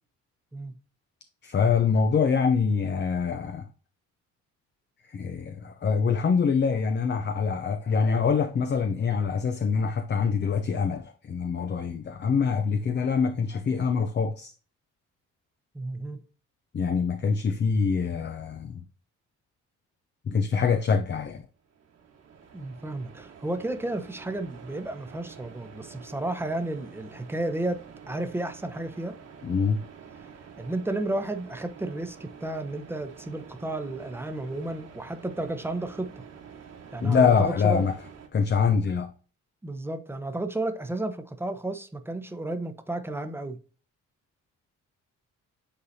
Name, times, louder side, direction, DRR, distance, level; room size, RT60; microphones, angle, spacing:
voice 1, 1.4-3.7 5.0-14.5 16.7-18.8 20.2-21.5 29.4-29.8 37.0-38.0 38.3-39.1, left 5 dB, 35° left, 0.6 m, -25 dB
voice 2, 15.7-16.2 22.5-29.1 30.6-36.1 36.9-37.8 39.6-43.6, right 2 dB, 10° right, 0.9 m, -32 dB
sound 1, 21.6-38.3, right 6 dB, 55° right, 1.6 m, -48 dB
9.8 x 3.9 x 2.8 m
cardioid pair, 90°, 30 cm